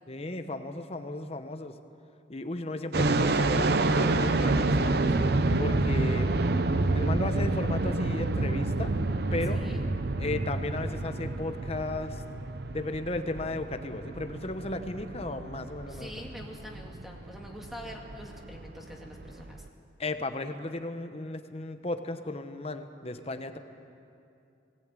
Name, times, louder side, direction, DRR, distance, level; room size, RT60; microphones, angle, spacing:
voice 1, 0.1-1.7 2.3-5.1 5.6-6.4 6.9-8.9 9.3-9.7 10.2-12.2 12.7-16.1 20.0-23.6, left 2 dB, 30° left, 8 dB, 0.9 m, -35 dB
sound 1, 2.9-19.7, right 2 dB, 55° right, 0.8 m, -28 dB
voice 2, 9.5-9.8 15.9-19.7, equal, ahead, 0 dB, 2.2 m, -45 dB
19.0 x 17.5 x 9.0 m, 2.6 s
head